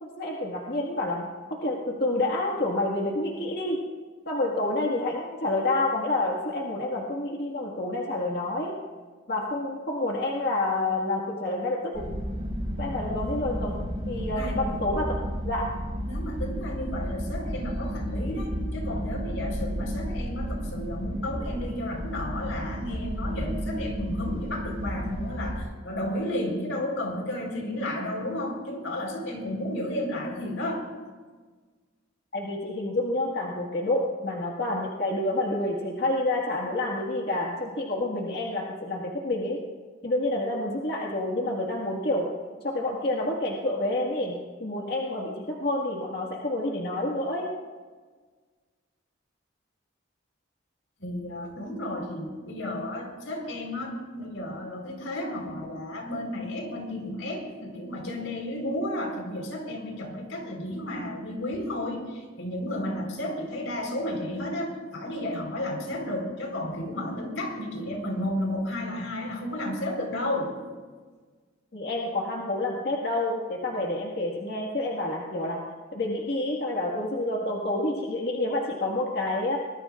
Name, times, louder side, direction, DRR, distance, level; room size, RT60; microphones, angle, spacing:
voice 1, 0.0-3.8 4.3-8.7 9.3-12.1 12.8-13.8 14.1-15.2 15.4-15.7 32.3-39.6 40.0-42.3 42.6-47.5 71.7-75.6 75.9-79.6, left 2 dB, 55° left, -2 dB, 1.8 m, -28 dB
sound 1, 11.9-25.6, equal, 30° right, 5.0 m, -32 dB
voice 2, 13.1-13.4 14.3-14.6 16.0-30.9 51.0-70.5, left 1 dB, 90° left, 1 dB, 4.4 m, -32 dB
25.0 x 20.0 x 2.5 m, 1.4 s
head